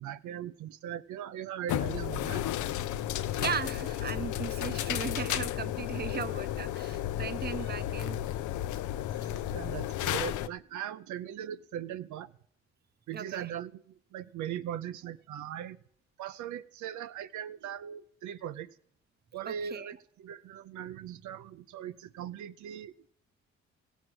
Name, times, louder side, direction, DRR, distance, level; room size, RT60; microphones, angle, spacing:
voice 1, 0.0-2.4 9.5-12.3 13.1-15.8 16.2-18.8 19.3-23.1, right 10 dB, 75° right, 12 dB, 0.5 m, -39 dB
sound 1, 1.7-10.5, left 12 dB, 80° left, 0.5 m, -33 dB
voice 2, 3.4-8.2 13.1-13.5 19.5-19.9, right 7 dB, 35° right, 14 dB, 0.7 m, -37 dB
16.0 x 6.2 x 7.8 m, 0.64 s
cardioid pair, 90°, 30 cm